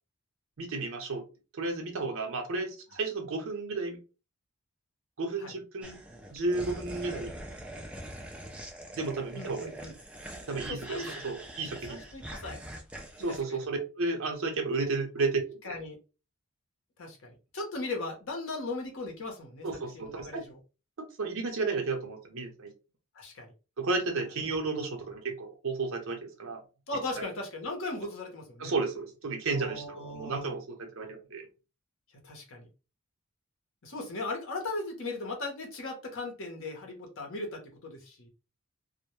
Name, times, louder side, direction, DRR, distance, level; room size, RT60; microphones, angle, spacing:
voice 1, 0.6-1.2 1.5-4.0 5.2-6.0 6.3-7.3 8.9-9.7 10.5-12.0 13.2-15.7 19.6-20.5 21.0-22.7 23.8-26.6 27.2-27.3 28.6-31.5, right 3 dB, 65° right, 4 dB, 0.6 m, -33 dB
sound 1, 5.8-13.4, right 1 dB, 5° right, 0.4 m, -43 dB
voice 2, 9.3-9.9 10.7-11.1 11.9-12.6 13.2-13.6 15.6-16.0 17.0-19.7 19.9-20.6 23.1-23.5 24.9-25.0 26.9-28.7 29.5-30.5 32.2-32.7 33.8-38.3, left 2 dB, 60° left, 2 dB, 0.8 m, -38 dB
2.1 x 2.1 x 2.9 m, 0.32 s
head